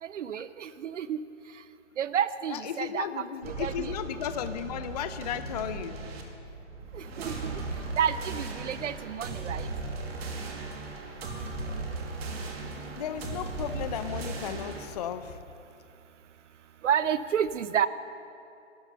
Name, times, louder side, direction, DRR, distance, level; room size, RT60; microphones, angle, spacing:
voice 1, 0.0-1.2 1.5-1.6 2.0-3.9 6.9-7.6 7.9-9.7 16.8-17.9, right 9 dB, 70° right, 15 dB, 0.6 m, -30 dB
voice 2, 2.5-6.0 12.9-15.4, left 9 dB, 35° left, 11 dB, 0.5 m, -35 dB
sound 1, 3.4-14.9, right 3 dB, 55° right, 2.2 m, -37 dB
17.5 x 12.0 x 5.7 m, 2.6 s
hypercardioid pair, 140°, 37 cm